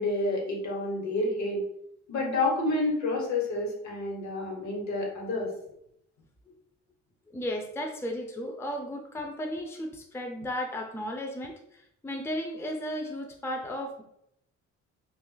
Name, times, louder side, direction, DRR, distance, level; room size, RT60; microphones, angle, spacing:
voice 1, 0.0-1.6 2.1-5.5, left 2 dB, 65° left, -1 dB, 1.2 m, -29 dB
voice 2, 7.3-14.0, equal, 10° left, 3 dB, 0.5 m, -35 dB
2.5 x 2.4 x 3.8 m, 0.76 s
cardioid pair, 90°, 30 cm